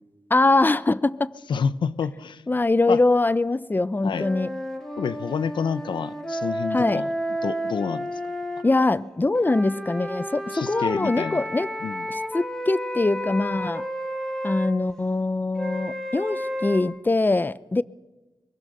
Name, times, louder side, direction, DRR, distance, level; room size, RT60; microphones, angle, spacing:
voice 1, 0.3-1.4 2.5-4.5 6.7-7.0 8.6-11.7 12.1-13.8 14.4-17.8, left 2 dB, 25° left, 0.7 m, -23 dB
voice 2, 1.5-2.4 2.9-3.0 4.0-4.3 5.0-7.1 7.4-8.2 10.5-11.4 11.8-12.1, left 6 dB, 85° left, 0.7 m, -28 dB
sound 1, 4.1-8.7 9.4-14.7 15.6-16.8, equal, 5° left, 3.9 m, -31 dB
24.0 x 22.5 x 6.7 m
cardioid pair, 55°, 8 cm